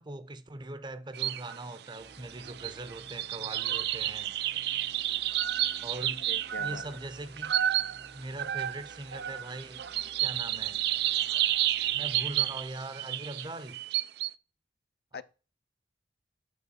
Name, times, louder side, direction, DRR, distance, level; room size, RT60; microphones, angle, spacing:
voice 1, 0.0-4.4 5.8-6.3 6.6-7.5 8.1-9.8 10.2-10.8 11.9-13.8 15.2-15.3, right 2 dB, 25° right, 0.7 m, -41 dB
sound 1, 1.1-1.6 1.9-14.3, right 13 dB, 65° right, 0.4 m, -31 dB
sound 2, 2.0-12.6, right 1 dB, 90° right, 4.0 m, -56 dB
voice 2, 6.2-7.0 15.1-15.2, left 5 dB, 60° left, 0.5 m, -43 dB
8.4 x 4.5 x 7.1 m
head